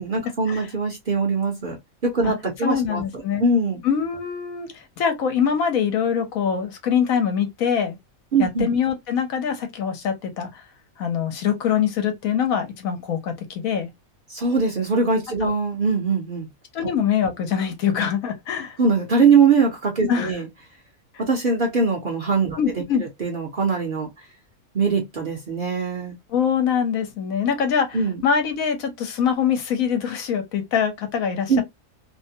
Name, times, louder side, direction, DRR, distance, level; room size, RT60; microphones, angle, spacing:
voice 1, 0.0-1.8 2.0-3.0 3.4-3.8 8.3-8.7 14.3-16.5 18.8-20.4 21.2-22.6 23.0-24.1 24.7-26.1 27.9-28.2 31.5-31.6, right 4 dB, 45° right, 0.8 m, -21 dB
voice 2, 2.6-3.4 3.8-8.0 8.4-10.6 11.0-13.9 15.4-15.5 16.7-18.8 20.1-20.4 22.6-23.0 26.3-31.5, left 7 dB, 75° left, 1.1 m, -24 dB
2.8 x 2.2 x 2.6 m
omnidirectional pair, 1.5 m